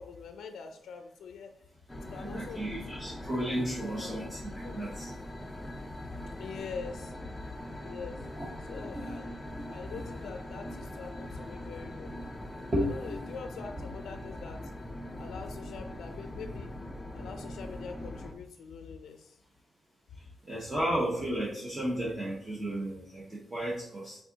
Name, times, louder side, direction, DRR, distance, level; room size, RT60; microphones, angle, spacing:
voice 1, 0.0-1.5 2.1-3.0 3.5-4.2 4.6-4.9 6.0-6.1 6.4-7.1 7.8-8.2 8.7-12.2 12.9-14.7 15.2-16.7 17.1-19.4 20.1-20.2, left 5 dB, 80° left, 6 dB, 0.4 m, -44 dB
sound 1, 1.9-18.3, left 1 dB, 10° left, 0.4 m, -42 dB
voice 2, 2.2-5.1 8.3-8.4 8.9-9.1 9.8-9.9 12.7-13.2 20.5-24.2, right 1 dB, 20° right, -5 dB, 0.9 m, -33 dB
5.3 x 3.5 x 2.8 m, 0.70 s
wide cardioid pair, 155°, 0 cm